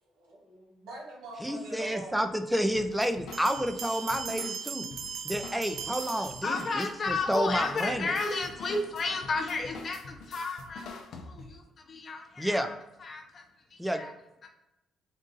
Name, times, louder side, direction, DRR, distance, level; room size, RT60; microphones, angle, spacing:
voice 1, 0.2-2.2, right 1 dB, 90° right, -5 dB, 1.3 m, -43 dB
voice 2, 1.4-4.9 5.2-8.2 12.4-12.7 13.8-14.0, equal, 5° right, 7 dB, 0.4 m, -30 dB
sound 1, 2.7-11.7, left 3 dB, 75° left, 0.5 m, -46 dB
Bell, 3.3-7.1, right 7 dB, 65° right, 0.3 m, -39 dB
voice 3, 6.4-13.4 13.7-14.1 14.4-14.5, left 3 dB, 45° left, 3 dB, 0.8 m, -33 dB
3.8 x 2.6 x 3.8 m, 0.92 s
cardioid pair, 90°, 0 cm